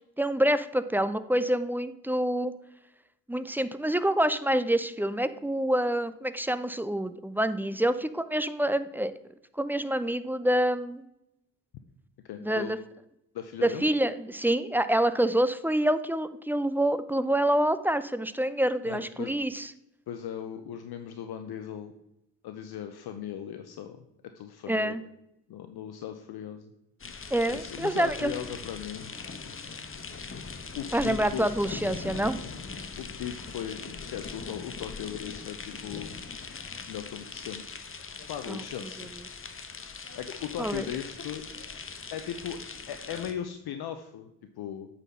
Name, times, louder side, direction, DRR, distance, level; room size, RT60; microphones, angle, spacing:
voice 1, 0.2-2.5 3.3-9.1 9.6-11.0 12.4-12.8 13.6-19.7 24.7-25.0 27.3-28.4 30.9-32.4 38.5-38.6 40.6-40.9, right 1 dB, 5° right, 12 dB, 0.4 m, -27 dB
voice 2, 12.2-12.8 13.3-13.9 18.8-19.4 20.1-21.9 22.4-24.0 24.3-25.0 25.5-26.7 27.5-29.1 30.7-31.5 33.0-36.2 36.9-37.7 38.3-39.1 40.1-41.4 42.1-42.6 42.9-44.3 44.6-44.9, left 9 dB, 55° left, 8 dB, 0.7 m, -38 dB
sound 1, 27.0-43.3, left 4 dB, 25° left, 1.0 m, -41 dB
8.0 x 4.2 x 5.6 m, 0.85 s
hypercardioid pair, 40°, 48 cm